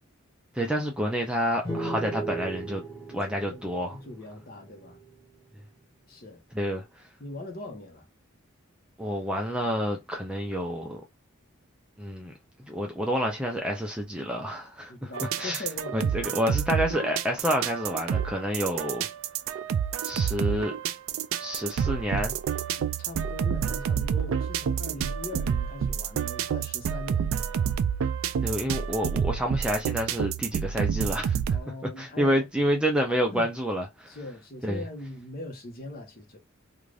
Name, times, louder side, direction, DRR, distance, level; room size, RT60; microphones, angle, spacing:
voice 1, 0.5-2.8 3.1-4.0 6.5-6.8 9.0-11.0 12.0-12.3 12.6-15.1 15.4-15.6 15.9-19.1 20.0-20.7 21.4-22.4 28.4-31.4 32.0-34.2 34.6-34.8, equal, 5° right, 0.5 m, -28 dB
sound 1, 1.6-5.2, right 2 dB, 20° left, 1.2 m, -36 dB
voice 2, 3.9-5.0 6.1-6.4 7.2-8.1 14.9-16.3 22.8-27.7 31.5-32.4 33.3-33.5 34.1-36.4, left 2 dB, 45° left, 0.9 m, -40 dB
sound 2, 15.1-31.6, right 8 dB, 75° right, 0.3 m, -29 dB
2.5 x 2.4 x 3.2 m
head